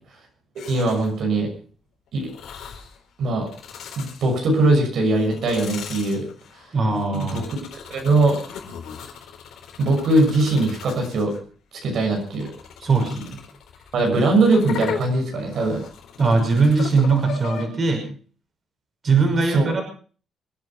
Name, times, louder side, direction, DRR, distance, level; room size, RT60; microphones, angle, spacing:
sound 1, 0.6-1.2 2.2-3.0 3.4-4.7 5.1-11.4 12.0-17.7, left 7 dB, 75° left, 4.1 m, -37 dB
voice 1, 0.7-1.5 2.1-2.3 3.2-3.5 4.0-6.2 7.1-7.4 7.9-8.4 9.8-11.3 11.8-12.5 13.9-15.8 19.5-19.7, right 2 dB, 70° right, 2 dB, 6.2 m, -20 dB
voice 2, 6.7-7.5 12.8-13.4 16.2-18.1 19.0-19.8, right 4 dB, 40° right, 4 dB, 5.9 m, -20 dB
26.0 x 9.5 x 5.6 m, 0.43 s
cardioid pair, 90°, 0 cm